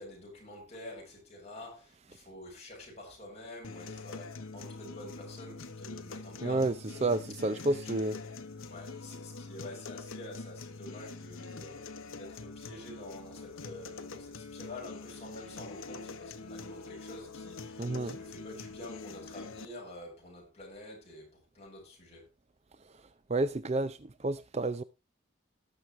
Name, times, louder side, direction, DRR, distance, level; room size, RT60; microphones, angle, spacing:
voice 1, 0.0-6.8 7.4-8.4 8.7-22.3, left 1 dB, 30° left, 7.3 m, -48 dB
sound 1, 3.6-19.7, left 3 dB, 90° left, 1.1 m, -44 dB
voice 2, 6.4-6.7 7.0-8.2 17.8-18.2 23.3-24.8, right 2 dB, 30° right, 0.5 m, -30 dB
18.5 x 6.6 x 3.1 m
head